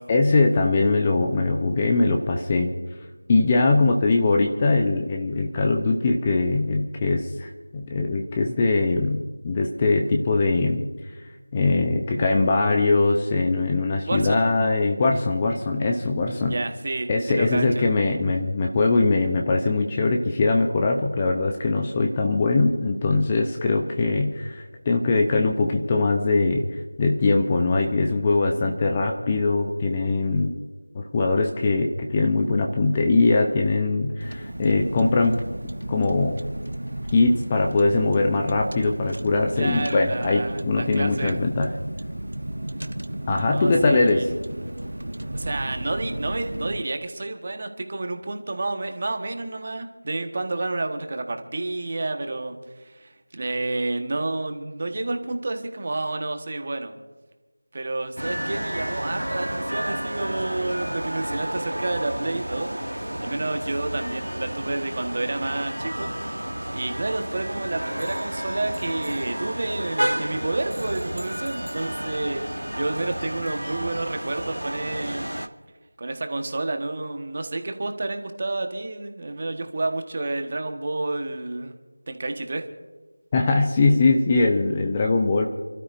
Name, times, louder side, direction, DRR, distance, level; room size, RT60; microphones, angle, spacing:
voice 1, 0.1-2.7 3.3-10.8 11.5-16.5 17.1-30.5 30.9-35.4 35.9-36.4 37.1-41.7 43.3-44.2 83.3-85.5, left 3 dB, 15° left, 3 dB, 0.7 m, -21 dB
voice 2, 14.1-14.4 16.4-17.9 39.5-41.3 43.4-44.3 45.3-56.9 57.7-62.7 63.2-66.1 66.7-75.3 76.0-81.8 82.1-82.6, right 2 dB, 30° right, 5 dB, 1.3 m, -30 dB
Car, 34.2-46.8, right 1 dB, 70° right, 0.9 m, -33 dB
sound 1, 58.2-75.5, right 1 dB, 90° right, 1.1 m, -31 dB
29.5 x 12.5 x 2.6 m, 1.3 s
figure-of-eight pair, 170°, 0 cm